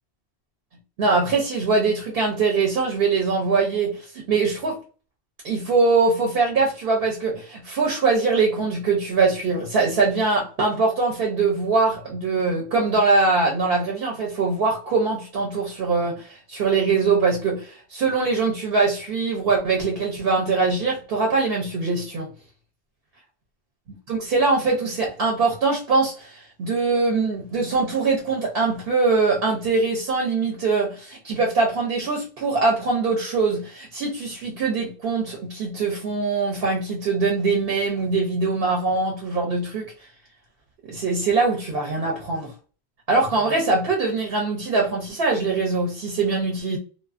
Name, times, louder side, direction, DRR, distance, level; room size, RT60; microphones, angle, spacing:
voice 1, 1.0-4.8 5.4-22.3 24.1-39.9 40.8-42.5 43.1-46.8, right 4 dB, 70° right, 0.8 m, -22 dB
2.4 x 2.2 x 2.4 m
omnidirectional pair, 1.0 m